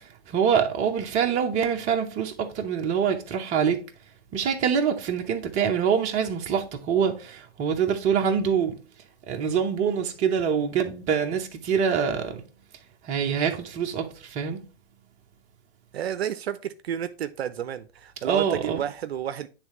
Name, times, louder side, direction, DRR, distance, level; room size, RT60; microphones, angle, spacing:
voice 1, 0.0-3.8 4.3-8.8 9.3-12.4 13.0-14.6 18.2-18.8, right 7 dB, 20° right, 0.7 m, -25 dB
voice 2, 15.9-19.5, right 10 dB, 70° right, 0.5 m, -31 dB
9.7 x 3.3 x 3.0 m
hypercardioid pair, 130°, 33 cm